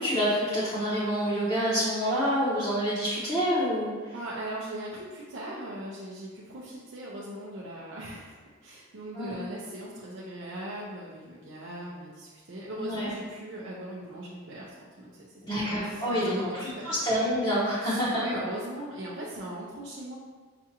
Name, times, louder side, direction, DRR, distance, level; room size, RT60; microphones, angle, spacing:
voice 1, 0.0-4.1 9.1-9.3 12.8-13.1 15.4-16.4 16.8-18.4, equal, 25° left, -12 dB, 0.9 m, -27 dB
voice 2, 4.1-17.0 17.8-20.2, right 1 dB, 65° right, -6 dB, 0.5 m, -39 dB
5.8 x 2.4 x 2.9 m, 1.4 s
head